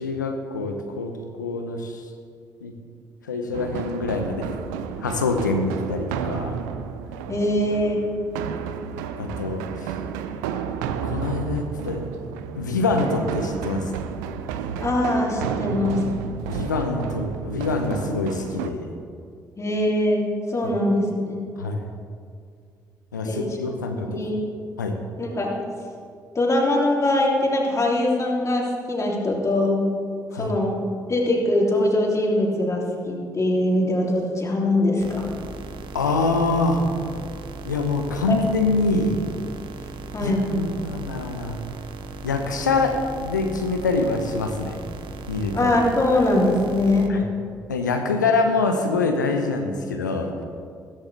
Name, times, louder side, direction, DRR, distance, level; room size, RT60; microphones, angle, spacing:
voice 1, 0.0-2.0 2.6-2.7 3.2-4.5 5.0-6.6 9.2-10.0 11.0-12.0 12.5-14.0 16.5-18.9 21.6-21.9 23.1-24.2 24.8-25.0 30.3-30.5 35.9-36.8 37.6-39.2 40.2-41.6 42.2-44.8 45.3-45.7 47.1-47.3 47.7-50.3, left 3 dB, 90° left, 5 dB, 0.9 m, -25 dB
sound 1, 3.5-18.7, right 7 dB, 75° right, 0.6 m, -32 dB
voice 2, 7.3-8.0 14.7-16.0 19.6-21.5 23.2-23.4 24.0-24.5 25.2-25.6 26.3-29.9 30.3-30.8 31.1-35.3 38.3-38.4 40.1-40.5 45.5-47.1, left 1 dB, 30° left, -2 dB, 3.2 m, -22 dB
sound 2, 35.0-47.1, right 3 dB, 60° right, 1.0 m, -37 dB
15.0 x 14.0 x 3.5 m, 2.2 s
figure-of-eight pair, 45°, 10 cm